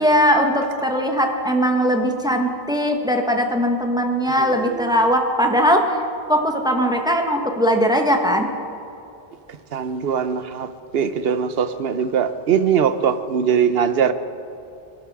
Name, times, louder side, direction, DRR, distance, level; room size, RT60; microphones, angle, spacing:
voice 1, 0.0-6.0 6.3-8.5, equal, 5° right, 3 dB, 1.3 m, -19 dB
voice 2, 4.4-4.9 9.7-14.1, right 7 dB, 75° right, 11 dB, 1.0 m, -21 dB
24.0 x 12.5 x 4.8 m, 2.6 s
omnidirectional pair, 1.0 m